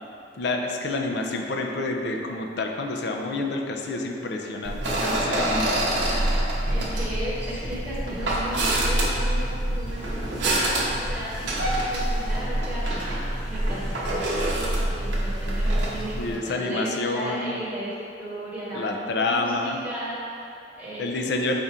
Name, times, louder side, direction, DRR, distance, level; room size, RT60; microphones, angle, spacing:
voice 1, 0.4-6.0 16.2-17.5 18.7-19.8 21.0-21.6, left 2 dB, 70° left, 2 dB, 0.4 m, -28 dB
sound 1, 4.6-16.4, right 1 dB, 85° right, 0.7 m, -26 dB
voice 2, 6.0-21.4, equal, 10° right, -11 dB, 1.0 m, -36 dB
5.1 x 2.4 x 4.2 m, 2.7 s
head